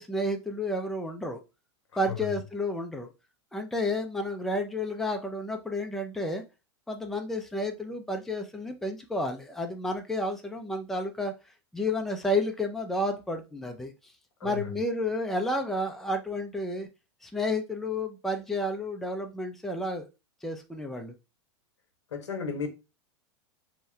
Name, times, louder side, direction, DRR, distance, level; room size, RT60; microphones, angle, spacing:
voice 1, 0.0-1.4 2.0-3.1 3.5-6.4 6.9-11.3 11.7-13.9 14.4-16.9 17.2-20.1 20.4-21.1, left 1 dB, ahead, 0.5 m, -31 dB
voice 2, 14.4-14.8 22.1-22.7, left 6 dB, 85° left, 0.8 m, -34 dB
2.8 x 2.2 x 3.2 m
hypercardioid pair, 105°, 15 cm